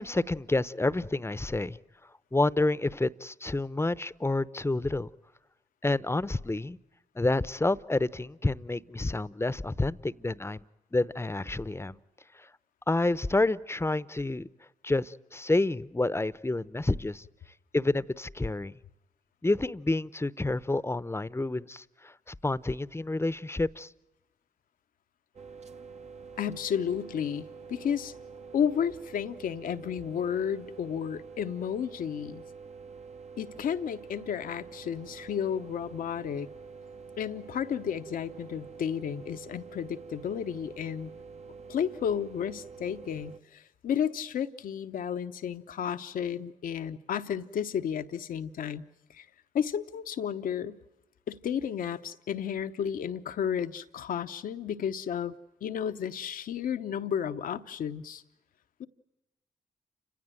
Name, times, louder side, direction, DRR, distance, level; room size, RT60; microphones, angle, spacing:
voice 1, 0.0-1.8 2.3-5.1 5.8-6.8 7.2-10.6 10.9-12.0 12.9-14.5 14.8-17.2 17.7-18.7 19.4-23.9, left 2 dB, 15° left, 0.8 m, -29 dB
sound 1, 25.3-43.4, right 5 dB, 50° right, 1.0 m, -47 dB
voice 2, 26.4-28.1 28.5-32.4 33.4-36.5 37.2-41.1 41.7-48.8 49.1-49.3 49.5-50.8 51.3-55.3 55.6-58.2 58.8-58.9, left 8 dB, 75° left, 0.9 m, -32 dB
29.0 x 16.5 x 9.1 m
supercardioid pair, 40°, 14 cm